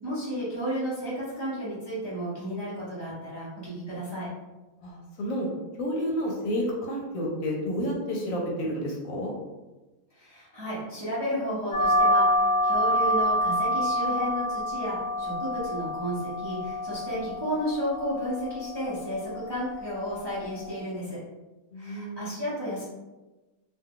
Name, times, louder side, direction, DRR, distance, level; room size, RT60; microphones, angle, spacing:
voice 1, 0.0-4.3 10.2-21.2 21.8-22.8, equal, 25° right, -9 dB, 0.6 m, -32 dB
voice 2, 4.8-5.5 5.8-9.3 21.7-22.3, equal, 65° left, -2 dB, 1.0 m, -30 dB
sound 1, 11.7-20.8, equal, 85° left, 0.4 m, -27 dB
2.7 x 2.2 x 3.5 m, 1.1 s
omnidirectional pair, 1.6 m